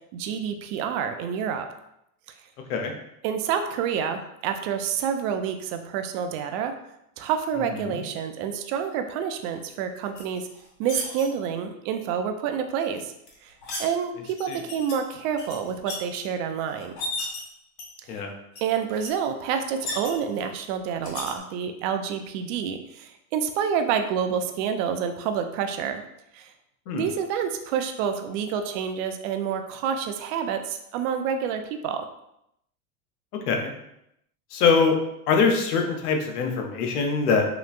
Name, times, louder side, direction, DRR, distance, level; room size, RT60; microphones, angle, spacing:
voice 1, 0.1-1.7 3.2-6.7 7.2-10.5 10.8-13.1 13.4-13.5 13.8-17.0 18.6-26.0 26.3-26.5 26.9-32.0, right 7 dB, 60° right, 7 dB, 0.5 m, -28 dB
sound 1, 10.1-11.2 13.0-13.9 14.4-14.9 15.3-16.2 16.7-17.4 17.8-18.2 18.5-18.6 18.9-19.1 19.4-20.4 21.0-21.3, left 2 dB, 40° left, 1.2 m, -35 dB
voice 2, 34.5-35.0 35.3-37.5, left 5 dB, 80° left, 3 dB, 0.8 m, -23 dB
3.0 x 2.9 x 2.5 m, 0.80 s
hypercardioid pair, 100°, 44 cm